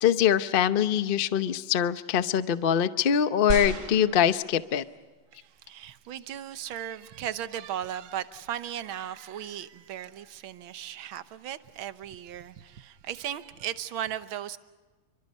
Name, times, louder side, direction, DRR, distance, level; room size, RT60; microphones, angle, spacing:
voice 1, 0.0-4.8, left 9 dB, 65° left, 0.5 m, -23 dB
sound 1, 3.5-5.0 5.8-5.9, right 4 dB, 55° right, 2.2 m, -34 dB
voice 2, 5.3-14.6, right 10 dB, 75° right, 1.8 m, -37 dB
29.5 x 25.0 x 5.4 m
omnidirectional pair, 2.3 m